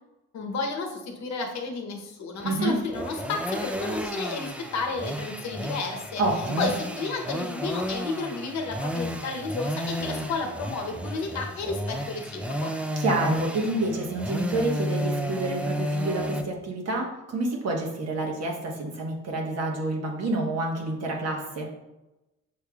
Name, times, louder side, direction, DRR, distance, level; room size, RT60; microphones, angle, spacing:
voice 1, 0.3-6.2 6.6-6.7 7.0-12.7, left 4 dB, 65° left, 3 dB, 0.9 m, -32 dB
sound 1, 2.4-16.4, equal, 5° right, 0.3 m, -32 dB
voice 2, 2.4-2.8 6.2-6.7 13.0-21.7, right 2 dB, 55° right, 0 dB, 1.2 m, -28 dB
6.7 x 3.2 x 2.3 m, 0.98 s
cardioid pair, 90°, 30 cm